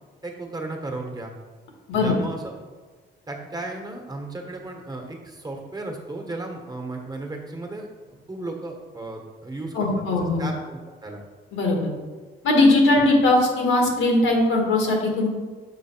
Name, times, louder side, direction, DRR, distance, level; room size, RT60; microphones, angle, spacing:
voice 1, 0.2-1.3 2.0-2.5 3.3-11.2, right 2 dB, 20° right, 1 dB, 1.4 m, -35 dB
voice 2, 9.7-10.4 11.5-11.9 12.4-15.3, left 2 dB, 80° left, 0 dB, 1.7 m, -19 dB
6.8 x 4.5 x 4.5 m, 1.4 s
cardioid pair, 90°, 20 cm